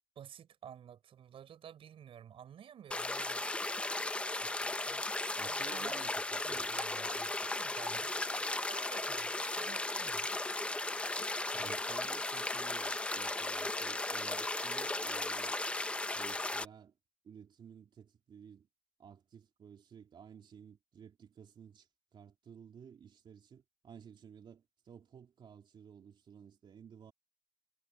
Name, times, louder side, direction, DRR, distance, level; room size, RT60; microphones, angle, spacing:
voice 1, 0.2-3.7 4.9-6.0 6.4-10.4 11.5-11.8, right 9 dB, 85° right, 5.2 m, -53 dB
sound 1, 2.9-16.7, left 2 dB, 10° left, 0.6 m, -36 dB
voice 2, 4.4-4.7 5.4-6.7 11.5-15.6 16.1-16.9 17.2-18.7 19.0-27.1, right 7 dB, 60° right, 3.2 m, -54 dB
wide cardioid pair, 180°, 9 cm